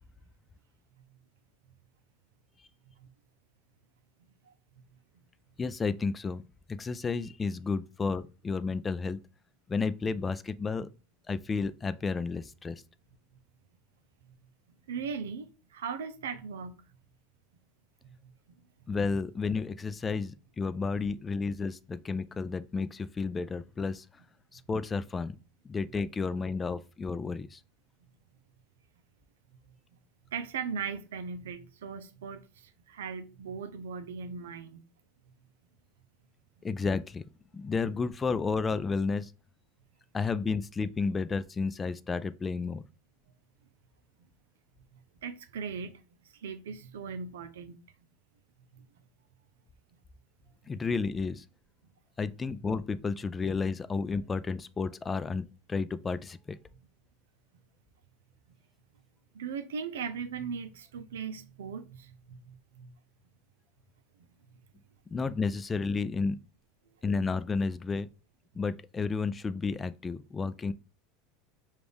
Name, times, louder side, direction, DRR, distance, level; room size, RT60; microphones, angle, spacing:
voice 1, 5.6-6.4 6.7-9.2 9.7-10.9 11.3-12.8 18.9-24.1 24.5-25.4 25.6-27.6 36.6-37.3 37.5-39.3 40.1-42.8 50.7-51.4 52.2-56.6 65.1-66.4 67.0-68.1 68.5-70.7, left 4 dB, 20° left, 0.3 m, -32 dB
voice 2, 14.9-16.9 18.2-18.3 30.3-34.8 45.2-47.7 48.7-48.9 59.3-62.9 64.2-64.3, right 6 dB, 85° right, 0.5 m, -39 dB
5.2 x 2.4 x 3.4 m
hypercardioid pair, 100°, 0 cm